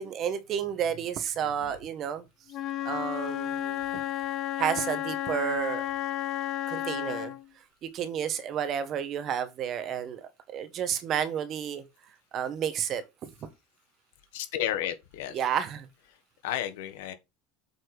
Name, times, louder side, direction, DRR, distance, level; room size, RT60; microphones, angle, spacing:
voice 1, 0.0-2.2 2.8-3.8 4.6-5.8 6.7-7.3 7.8-11.8 12.3-13.3 15.3-15.9, right 8 dB, 35° right, 1.2 m, -31 dB
voice 2, 1.4-1.8 14.3-15.4 16.4-17.1, left 11 dB, 80° left, 1.3 m, -33 dB
Wind instrument woodwind instrument, 2.5-7.5, left 12 dB, 40° left, 0.7 m, -32 dB
8.0 x 4.4 x 4.8 m
supercardioid pair, 155°, 0 cm